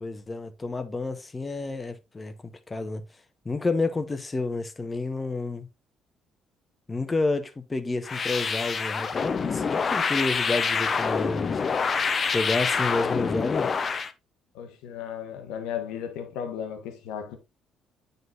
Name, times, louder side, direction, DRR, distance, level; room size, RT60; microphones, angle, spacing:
voice 1, 0.0-3.0 3.4-5.7 6.9-11.6 12.3-13.7, left 3 dB, 25° left, 1.0 m, -30 dB
sound 1, 8.0-14.1, left 5 dB, 40° left, 0.7 m, -26 dB
voice 2, 14.5-17.4, left 8 dB, 70° left, 1.1 m, -35 dB
9.3 x 4.0 x 2.5 m
hypercardioid pair, 50°, 0 cm